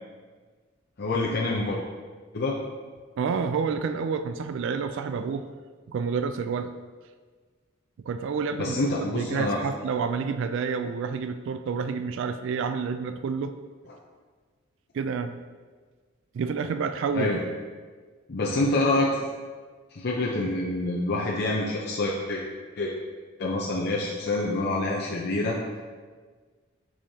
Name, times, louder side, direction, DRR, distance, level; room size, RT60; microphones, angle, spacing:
voice 1, 1.0-1.8 2.3-2.5 8.6-9.6 17.1-17.4 18.3-19.3 19.9-22.4 22.8-22.9 23.4-25.6, left 2 dB, 55° left, -3 dB, 0.6 m, -26 dB
voice 2, 3.2-5.5 5.9-6.7 8.1-13.5 14.9-15.4 16.3-17.4, right 5 dB, 65° right, 9 dB, 0.3 m, -29 dB
6.3 x 6.1 x 2.8 m, 1.5 s
head